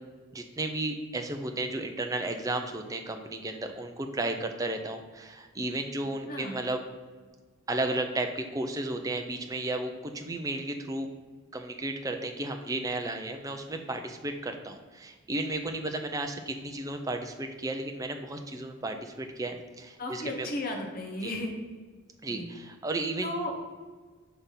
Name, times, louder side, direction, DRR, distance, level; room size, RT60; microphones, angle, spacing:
voice 1, 0.3-6.8 7.7-11.1 11.5-20.5 21.2-21.3 22.2-23.3, right 2 dB, 15° right, 5 dB, 0.4 m, -33 dB
voice 2, 20.0-21.5 22.3-22.5 23.2-23.6, left 1 dB, 40° left, 1 dB, 1.0 m, -34 dB
5.5 x 3.4 x 5.6 m, 1.4 s
head